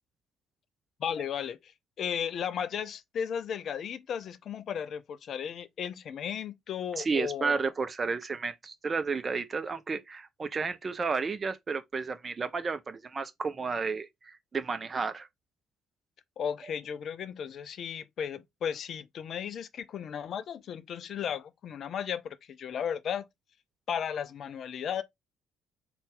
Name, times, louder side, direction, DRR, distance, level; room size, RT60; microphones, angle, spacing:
voice 1, 1.0-1.7 2.0-7.6 16.4-23.3 23.9-25.0, left 8 dB, 50° left, 0.4 m, -35 dB
voice 2, 7.0-15.3, right 4 dB, 30° right, 0.6 m, -32 dB
3.9 x 2.3 x 3.6 m
figure-of-eight pair, 50°, 0 cm